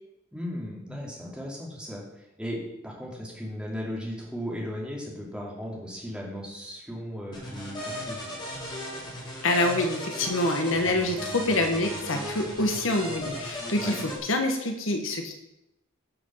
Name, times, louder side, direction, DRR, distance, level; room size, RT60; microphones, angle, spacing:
voice 1, 0.3-8.3 13.8-13.9, equal, 5° right, -3 dB, 2.9 m, -36 dB
sound 1, 7.3-14.2, equal, 25° left, 3.2 m, -36 dB
voice 2, 9.4-15.4, left 2 dB, 80° left, 4 dB, 1.5 m, -26 dB
12.0 x 6.3 x 5.8 m, 0.87 s
head